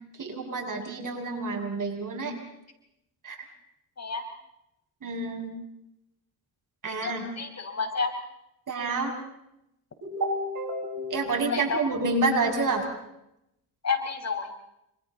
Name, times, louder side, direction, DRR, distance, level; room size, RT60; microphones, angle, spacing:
voice 1, 0.2-2.3 3.2-3.4 5.0-5.5 6.8-7.2 8.7-9.1 10.1-12.9, right 2 dB, 45° right, 3 dB, 6.9 m, -28 dB
voice 2, 6.9-8.1 11.5-11.8 13.8-14.5, left 5 dB, 35° left, 5 dB, 5.1 m, -30 dB
29.0 x 27.0 x 4.1 m, 0.83 s
hypercardioid pair, 60°, 43 cm